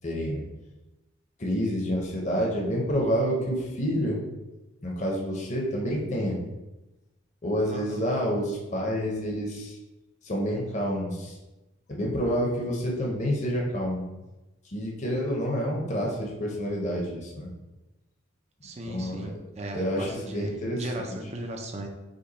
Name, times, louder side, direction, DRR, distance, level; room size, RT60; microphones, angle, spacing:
voice 1, 0.0-0.5 1.4-4.2 4.8-6.4 7.4-9.8 10.2-11.4 11.9-14.1 14.7-17.5 18.9-19.3 19.7-21.2, equal, 35° left, -2 dB, 0.8 m, -28 dB
voice 2, 7.7-8.0 18.6-21.9, right 1 dB, 30° right, 2 dB, 0.5 m, -37 dB
5.1 x 2.3 x 4.1 m, 1.0 s
head